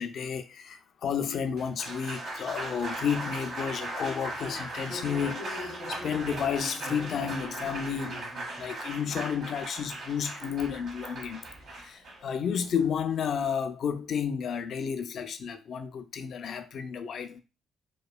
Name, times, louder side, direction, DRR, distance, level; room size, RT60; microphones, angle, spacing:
voice 1, 0.0-8.3 8.6-11.4 11.7-17.4, left 7 dB, 60° left, 0.4 m, -32 dB
Applause, 1.4-13.6, right 1 dB, 65° right, 1.0 m, -38 dB
2.9 x 2.1 x 2.3 m
cardioid pair, 90°, 0 cm